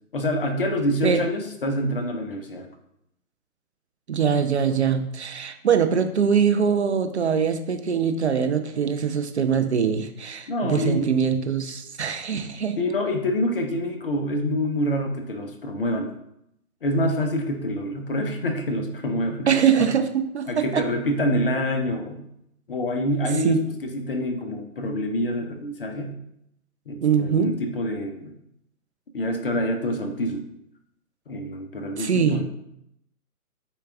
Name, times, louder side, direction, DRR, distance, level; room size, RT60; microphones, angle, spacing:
voice 1, 0.1-2.7 10.5-11.3 12.3-12.4 12.8-16.1 16.8-19.5 19.8-19.9 20.5-22.2 22.7-26.1 26.9-28.4 29.1-30.4 31.3-32.4, left 1 dB, 40° left, 5 dB, 0.6 m, -26 dB
voice 2, 4.1-12.8 19.5-20.9 23.4-23.6 27.0-27.6 32.0-32.4, right 7 dB, 50° right, 7 dB, 0.4 m, -23 dB
6.8 x 2.3 x 3.4 m, 0.78 s
hypercardioid pair, 145°, 45 cm